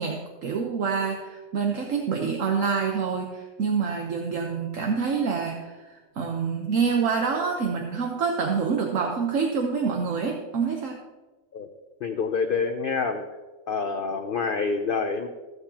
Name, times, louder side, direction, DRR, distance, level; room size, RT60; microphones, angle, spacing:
voice 1, 0.0-11.0, right 5 dB, 70° right, 1 dB, 1.3 m, -27 dB
voice 2, 12.0-13.3 13.7-15.3, left 5 dB, 55° left, 4 dB, 0.7 m, -27 dB
15.5 x 8.0 x 2.9 m, 1.2 s
omnidirectional pair, 1.5 m